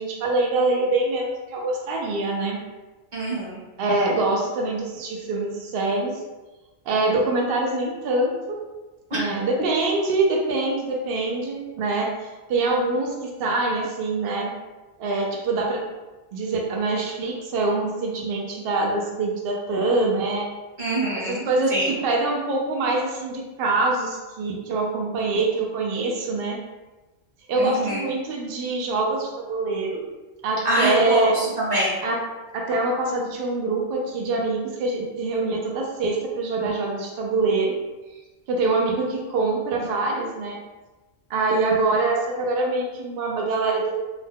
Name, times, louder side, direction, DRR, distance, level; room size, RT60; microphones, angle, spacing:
voice 1, 0.0-2.6 3.8-6.2 6.9-8.6 9.1-14.5 15.0-15.8 16.3-20.5 21.1-26.6 27.5-30.0 30.4-31.3 32.0-32.2 32.5-37.8 38.5-40.6 41.3-44.0, right 2 dB, 60° right, -1 dB, 0.8 m, -24 dB
voice 2, 3.1-3.6 9.1-9.2 20.8-21.4 21.7-21.9 27.6-28.0 30.6-32.0, right 1 dB, 45° right, -6 dB, 1.1 m, -24 dB
2.7 x 2.2 x 3.5 m, 1.1 s
omnidirectional pair, 1.2 m